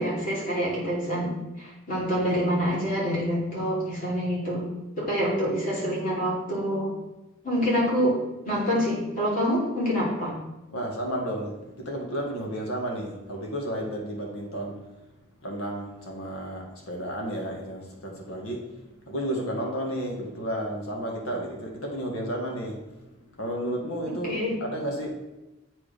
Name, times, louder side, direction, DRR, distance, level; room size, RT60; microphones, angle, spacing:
voice 1, 0.0-4.6 5.0-6.9 7.4-10.3 24.2-24.5, equal, 40° left, -6 dB, 3.2 m, -26 dB
voice 2, 10.7-14.8 15.4-25.1, equal, 75° left, 0 dB, 1.9 m, -32 dB
8.4 x 4.7 x 5.1 m, 1.0 s
head